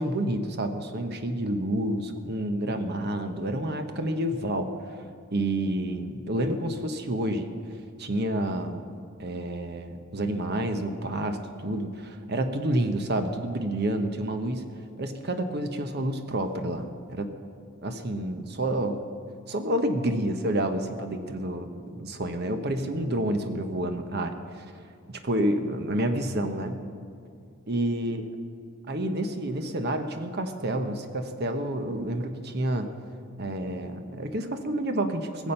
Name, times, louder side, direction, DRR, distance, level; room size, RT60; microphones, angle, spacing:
voice 1, 0.0-4.7 5.3-7.5 8.0-8.8 9.2-14.6 15.0-17.3 17.8-19.0 19.5-24.6 25.1-26.8 27.7-28.3 28.9-32.9 33.4-35.5, right 1 dB, 55° right, 7 dB, 1.0 m, -29 dB
20.5 x 7.2 x 5.7 m, 2.4 s
head